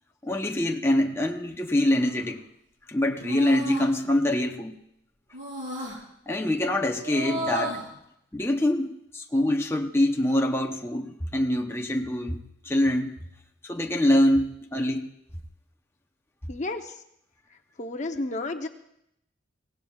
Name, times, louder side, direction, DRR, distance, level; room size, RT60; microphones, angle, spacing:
voice 1, 0.2-2.4 2.9-4.8 6.3-7.8 8.3-12.4 12.6-13.2 13.6-15.1, left 1 dB, 15° left, 2 dB, 0.8 m, -24 dB
sound 1, 1.8-2.3 3.2-3.9 5.3-6.0 6.9-7.9, right 1 dB, 80° right, 4.7 m, -34 dB
voice 2, 16.5-16.9 17.8-18.7, left 2 dB, 40° left, 5 dB, 0.8 m, -31 dB
23.5 x 17.5 x 2.4 m, 0.76 s
head